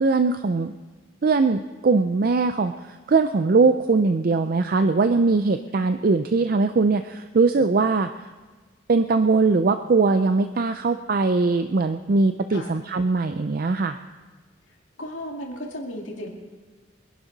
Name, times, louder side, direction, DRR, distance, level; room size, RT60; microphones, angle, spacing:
voice 1, 0.0-0.7 1.2-2.7 3.1-8.1 8.9-14.0, right 3 dB, 50° right, 9 dB, 0.4 m, -21 dB
voice 2, 15.0-16.3, equal, 85° left, 0 dB, 2.3 m, -34 dB
24.0 x 11.0 x 4.0 m, 1.4 s
head